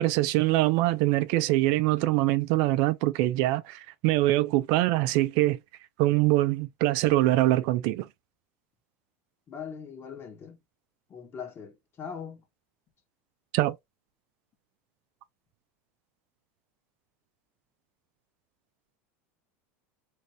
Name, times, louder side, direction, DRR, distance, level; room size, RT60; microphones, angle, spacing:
voice 1, 0.0-5.6 6.0-8.1 13.5-13.7, right 17 dB, 60° right, 0.4 m, -24 dB
voice 2, 9.5-10.6 11.1-12.4, left 7 dB, 35° left, 1.3 m, -41 dB
3.3 x 2.6 x 2.9 m
supercardioid pair, 105°, 7 cm